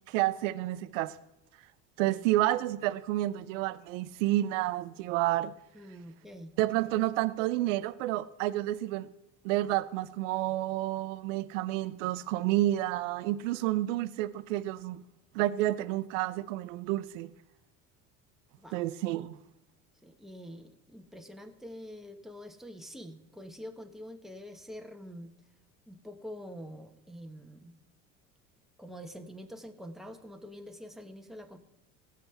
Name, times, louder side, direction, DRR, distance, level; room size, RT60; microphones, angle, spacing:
voice 1, 0.1-1.2 2.0-5.5 6.6-9.1 9.4-15.0 15.3-17.3 18.7-19.4, right 15 dB, 75° right, 0.6 m, -30 dB
voice 2, 5.7-6.5 18.6-18.9 20.0-25.3 25.9-27.7 28.8-31.6, equal, ahead, 1.4 m, -46 dB
17.5 x 7.6 x 3.4 m
hypercardioid pair, 75°, 38 cm